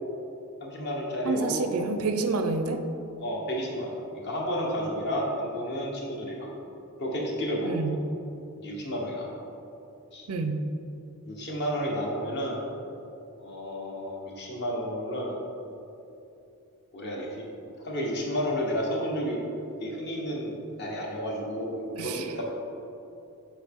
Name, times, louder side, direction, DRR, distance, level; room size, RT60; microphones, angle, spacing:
voice 1, 0.6-1.6 3.2-6.5 7.0-7.8 8.6-9.3 10.1-10.2 11.3-12.6 13.4-15.3 16.9-17.4 17.8-19.4 19.8-22.4, equal, 50° left, -2 dB, 1.2 m, -31 dB
voice 2, 1.2-2.8 7.6-8.0 10.3-10.6 21.9-22.3, right 3 dB, 85° right, 7 dB, 0.5 m, -28 dB
7.2 x 4.5 x 3.7 m, 2.8 s
head